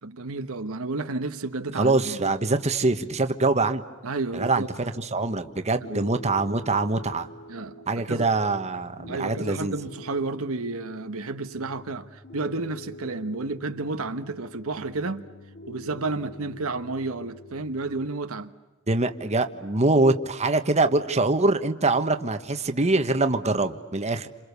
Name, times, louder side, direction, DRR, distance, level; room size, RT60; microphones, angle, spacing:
voice 1, 0.0-2.3 4.0-4.7 5.8-6.1 7.5-8.3 9.1-15.3 15.7-18.5, right 3 dB, 75° right, 1.2 m, -31 dB
voice 2, 1.8-3.8 4.3-7.3 7.9-9.7 18.9-24.3, right 2 dB, 30° right, 1.3 m, -24 dB
Piano, 5.0-18.1, left 1 dB, 50° left, 6.2 m, -45 dB
29.0 x 27.5 x 6.9 m
head